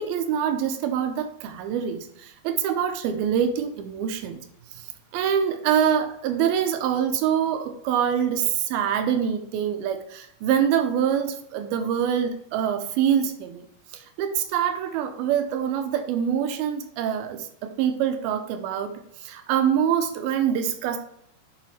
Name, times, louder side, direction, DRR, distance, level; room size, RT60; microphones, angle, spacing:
voice 1, 0.0-4.4 4.8-13.7 13.9-18.9 19.2-21.0, right 8 dB, 85° right, 7 dB, 2.6 m, -25 dB
10.5 x 3.9 x 4.2 m, 0.74 s
omnidirectional pair, 4.3 m